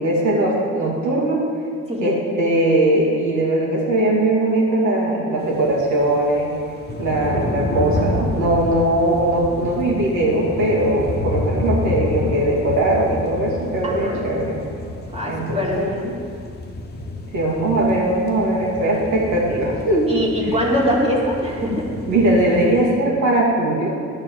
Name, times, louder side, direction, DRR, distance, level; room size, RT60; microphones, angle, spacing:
voice 1, 0.0-1.4 2.0-6.5 7.0-14.6 15.3-16.0 17.3-20.1 20.4-20.5 22.1-24.0, right 1 dB, 70° right, -4 dB, 2.5 m, -20 dB
sound 1, 5.4-22.9, left 2 dB, 35° left, 1.1 m, -29 dB
voice 2, 13.8-14.2 15.1-16.1 20.1-21.9, equal, 20° right, -3 dB, 2.3 m, -23 dB
11.0 x 4.4 x 7.6 m, 2.3 s
cardioid pair, 90°, 30 cm